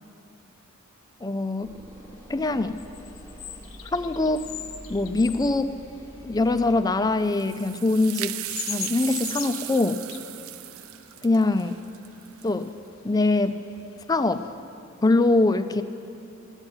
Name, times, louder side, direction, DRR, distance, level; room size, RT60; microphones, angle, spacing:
voice 1, 1.2-1.8 2.3-2.8 3.9-4.5 4.9-5.8 6.2-8.4 8.7-10.0 11.2-11.8 12.4-12.7 13.0-13.6 14.1-14.5 15.0-15.8, left 2 dB, 20° left, 11 dB, 0.4 m, -23 dB
sound 1, 1.6-7.3, equal, 15° right, 1.2 m, -45 dB
sound 2, 1.9-14.5, left 9 dB, 70° left, 0.8 m, -43 dB
sound 3, 7.2-12.7, right 15 dB, 80° right, 0.4 m, -36 dB
12.5 x 8.9 x 9.8 m, 2.8 s
head